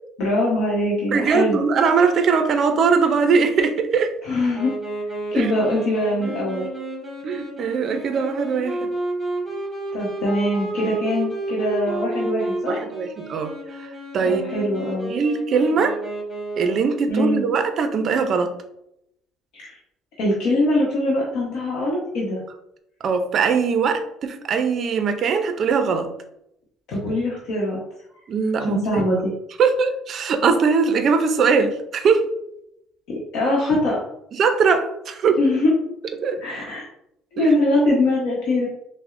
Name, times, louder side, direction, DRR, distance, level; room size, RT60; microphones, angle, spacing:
voice 1, 0.2-1.6 4.2-4.8 5.3-6.7 9.9-12.8 14.2-15.1 17.1-17.4 19.5-19.8 20.2-22.4 26.9-27.8 28.7-29.3 33.1-34.0 35.4-35.7 36.4-36.9 37.3-38.7, left 1 dB, 65° left, -4 dB, 0.9 m, -22 dB
voice 2, 1.1-4.2 5.3-5.5 7.2-8.9 12.7-13.5 13.8-14.4 15.1-16.0 16.6-18.5 23.0-26.1 28.3-29.0 29.6-32.3 34.4-35.4 36.2-36.4 37.4-37.5, right 5 dB, 40° right, 7 dB, 0.4 m, -21 dB
Wind instrument woodwind instrument, 4.5-17.0, right 2 dB, 5° right, 1.0 m, -31 dB
5.9 x 2.0 x 2.5 m, 0.79 s
cardioid pair, 170°, 0 cm